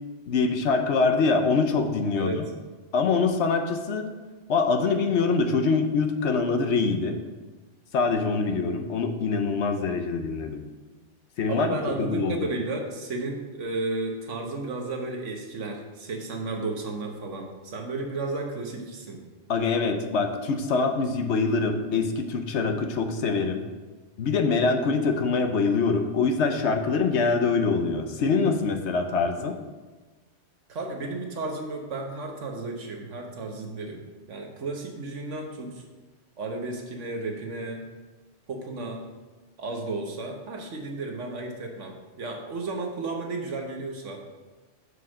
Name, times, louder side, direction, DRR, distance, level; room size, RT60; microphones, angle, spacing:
voice 1, 0.3-2.4 2.9-4.1 4.5-7.2 7.9-10.6 11.4-12.4 19.5-23.6 24.2-29.6, left 4 dB, 70° left, 6 dB, 1.0 m, -24 dB
voice 2, 11.5-19.2 30.7-35.8 36.4-37.8 38.5-39.0 39.6-44.2, right 2 dB, 75° right, 2 dB, 1.4 m, -33 dB
6.5 x 4.7 x 6.2 m, 1.3 s
omnidirectional pair, 1.3 m